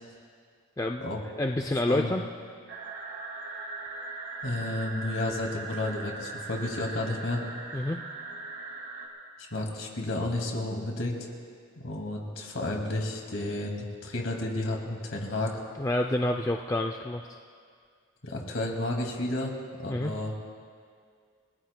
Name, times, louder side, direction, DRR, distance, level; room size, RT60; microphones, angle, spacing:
voice 1, 0.8-1.1 1.4-2.3 7.7-8.0 15.8-17.4 19.9-20.1, left 1 dB, 15° left, 3 dB, 0.3 m, -28 dB
sound 1, 2.7-9.1, right 3 dB, 75° right, 2.4 m, -40 dB
voice 2, 4.4-7.4 9.5-11.3 11.8-15.6 18.2-20.3, left 1 dB, 60° left, 1 dB, 2.3 m, -32 dB
30.0 x 17.5 x 2.2 m, 2.1 s
head